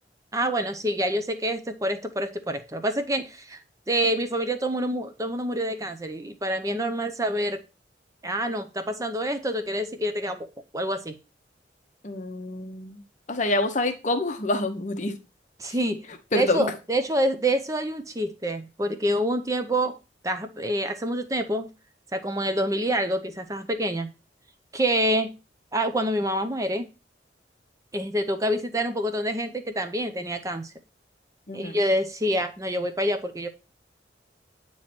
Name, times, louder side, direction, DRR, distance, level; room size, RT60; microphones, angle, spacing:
voice 1, 0.3-3.6 3.9-7.6 8.2-10.5 10.7-11.2 15.6-16.0 16.3-20.0 20.2-21.7 22.1-24.1 24.7-25.3 25.7-26.9 27.9-30.7 31.5-33.5, right 1 dB, 20° right, 0.6 m, -27 dB
voice 2, 12.0-13.0 13.3-15.1 16.3-16.7 31.5-31.8, left 2 dB, 40° left, 0.8 m, -27 dB
9.0 x 3.1 x 4.2 m
head